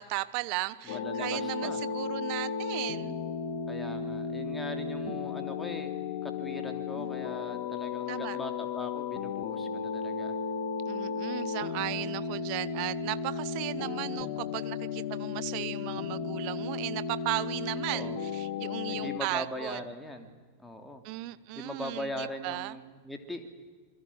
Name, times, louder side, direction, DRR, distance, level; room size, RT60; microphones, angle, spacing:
voice 1, 0.0-3.1 7.0-7.2 8.1-8.4 10.9-19.8 21.0-22.8, right 20 dB, 45° right, 16 dB, 1.0 m, -36 dB
voice 2, 0.8-1.8 3.7-5.9 6.2-10.3 17.9-18.2 18.9-20.3 20.6-21.0 21.5-23.5, left 1 dB, 5° left, 5 dB, 2.9 m, -40 dB
sound 1, 0.9-19.2, left 5 dB, 50° left, 2.3 m, -34 dB
27.5 x 23.0 x 8.6 m, 1.4 s
figure-of-eight pair, 90°, 0 cm